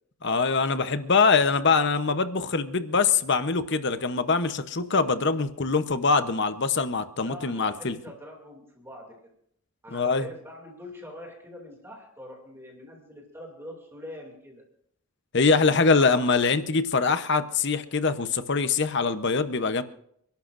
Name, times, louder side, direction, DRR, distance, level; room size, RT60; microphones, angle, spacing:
voice 1, 0.2-8.0 9.9-10.3 15.3-19.8, left 4 dB, 50° left, 11 dB, 0.9 m, -23 dB
voice 2, 7.1-9.2 9.8-14.6 15.6-16.4, left 1 dB, 10° right, 0 dB, 2.6 m, -44 dB
29.5 x 11.5 x 2.6 m, 0.69 s
head